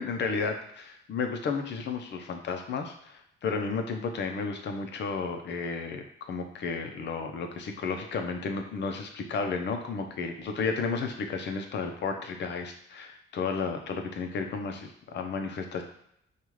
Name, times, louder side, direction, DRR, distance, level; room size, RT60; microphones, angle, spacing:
voice 1, 0.0-15.8, left 4 dB, 60° left, 4 dB, 0.7 m, -33 dB
5.3 x 2.4 x 3.2 m, 0.73 s
cardioid pair, 90°, 20 cm